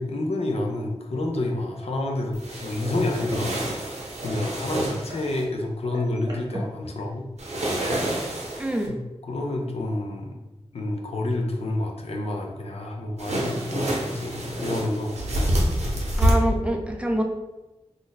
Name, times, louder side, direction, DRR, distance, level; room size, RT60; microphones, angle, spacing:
voice 1, 0.0-2.4 2.6-3.7 4.2-7.3 8.9-9.0 9.3-10.4 10.7-15.6 16.0-16.3, left 2 dB, 65° left, 1 dB, 0.5 m, -29 dB
sound 1, 2.1-5.3 5.7-6.7 7.6-8.5, right 1 dB, 40° right, 0.8 m, -41 dB
sound 2, 2.3-5.4 7.4-8.9 13.2-16.3, right 1 dB, 85° right, 0.6 m, -28 dB
voice 2, 8.6-9.0 16.2-17.2, right 1 dB, 10° right, 2 dB, 0.4 m, -25 dB
2.5 x 2.0 x 3.9 m, 1.0 s
wide cardioid pair, 60°, 11 cm